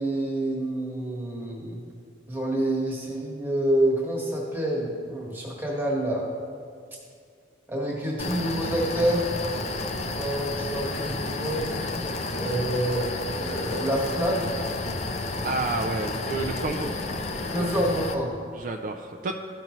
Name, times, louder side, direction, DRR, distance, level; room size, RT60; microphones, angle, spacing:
voice 1, 0.0-1.8 2.3-6.3 7.7-9.3 10.2-11.6 12.3-13.0 13.4-14.5 17.5-18.4, right 1 dB, 10° right, -3 dB, 1.2 m, -27 dB
sound 1, 8.2-18.1, left 2 dB, 35° left, 0.5 m, -31 dB
voice 2, 15.4-16.9 18.5-19.3, right 3 dB, 45° right, 3 dB, 0.3 m, -30 dB
13.5 x 5.3 x 3.0 m, 2.3 s
head